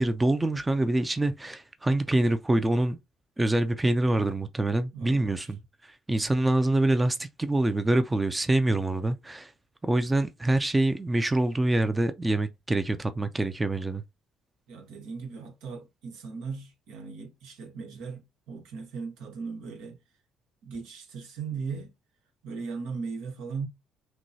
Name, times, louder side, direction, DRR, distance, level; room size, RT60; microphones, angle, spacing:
voice 1, 0.0-3.0 3.4-5.6 5.8-9.5 9.8-14.0, right 2 dB, 15° right, 0.5 m, -25 dB
voice 2, 4.9-5.5 14.7-20.0 20.6-21.9 22.4-23.7, right 5 dB, 80° right, 1.3 m, -38 dB
6.0 x 2.3 x 2.7 m
supercardioid pair, 80°, 0 cm